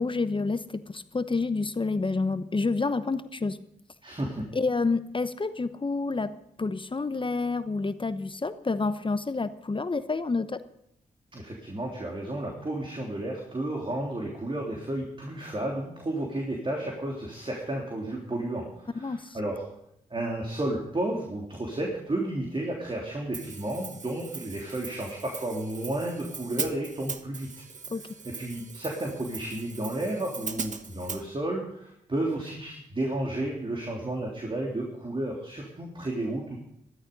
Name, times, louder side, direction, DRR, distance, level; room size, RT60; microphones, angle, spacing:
voice 1, 0.0-3.6 4.5-6.3 6.6-10.6 19.0-19.4 27.9-28.2, left 3 dB, 30° left, 12 dB, 0.9 m, -29 dB
voice 2, 4.0-4.4 11.3-19.6 20.1-27.6 28.4-36.6, right 1 dB, 30° right, -1 dB, 3.4 m, -32 dB
Hi-hat, 23.3-31.2, right 5 dB, 50° right, 1.2 m, -39 dB
14.0 x 12.5 x 5.4 m, 0.76 s
supercardioid pair, 45°, 16 cm